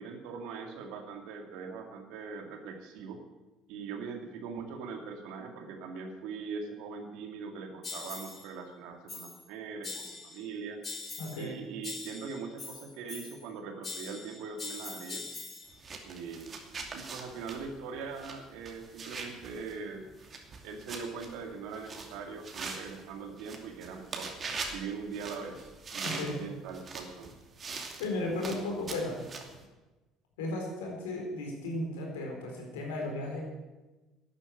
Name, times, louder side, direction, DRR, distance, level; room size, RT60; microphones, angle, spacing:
voice 1, 0.0-3.2 3.7-10.8 11.4-15.3 16.0-16.6 16.9-20.1 20.6-24.3 24.7-27.3 28.3-28.4, right 5 dB, 70° right, 4 dB, 2.2 m, -41 dB
sound 1, 7.8-8.5 9.1-9.5 9.8-10.5 10.8-11.5 11.8-13.5 13.8-15.7, left 4 dB, 35° left, 3.0 m, -42 dB
voice 2, 11.2-11.5 26.0-26.4 28.0-29.2 30.4-33.4, left 2 dB, 85° left, 0 dB, 4.1 m, -35 dB
sound 2, 15.7-29.6, right 4 dB, 40° right, 2.6 m, -43 dB
12.0 x 9.8 x 8.4 m, 1.2 s
hypercardioid pair, 70°, 0 cm